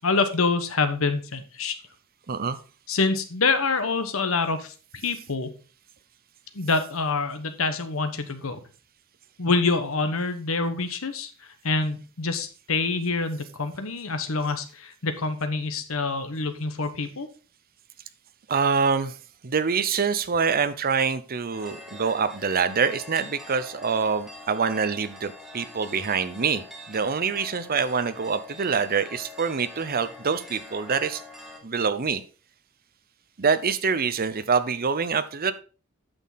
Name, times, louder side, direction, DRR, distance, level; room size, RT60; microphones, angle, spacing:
voice 1, 0.0-1.7 2.9-5.5 6.5-8.6 9.4-11.3 11.6-17.3, left 4 dB, 70° left, 9 dB, 1.1 m, -26 dB
voice 2, 2.3-2.6 18.5-19.1 19.4-31.2 31.6-32.2 33.4-35.5, right 5 dB, 45° right, 12 dB, 0.7 m, -25 dB
sound 1, 21.5-31.6, left 2 dB, ahead, 1.6 m, -44 dB
8.9 x 6.5 x 4.0 m, 0.36 s
head